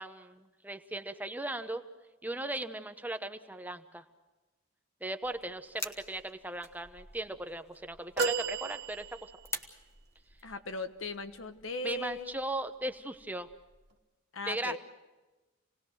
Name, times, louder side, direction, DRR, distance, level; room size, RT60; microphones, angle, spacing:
voice 1, 0.0-1.8 2.2-4.0 5.0-9.3 11.8-13.5 14.5-14.8, right 1 dB, 10° right, 9 dB, 0.9 m, -38 dB
sound 1, 5.2-10.6, left 2 dB, 15° left, 1.3 m, -46 dB
sound 2, 8.2-9.6 12.0-12.2 13.5-13.6, right 5 dB, 55° right, 1.3 m, -33 dB
voice 2, 10.4-12.4 14.3-14.8, left 2 dB, 75° left, 9 dB, 1.3 m, -38 dB
28.0 x 19.0 x 6.4 m, 1.1 s
head